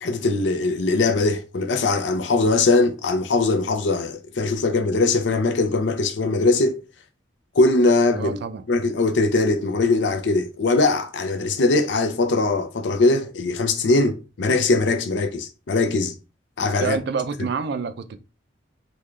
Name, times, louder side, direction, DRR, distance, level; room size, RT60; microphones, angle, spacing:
voice 1, 0.0-6.8 7.5-8.3 8.7-16.2 16.6-17.0, left 3 dB, 70° left, 0.5 m, -21 dB
voice 2, 8.1-8.6 16.8-18.2, right 5 dB, 60° right, 0.4 m, -27 dB
3.6 x 2.2 x 3.1 m
head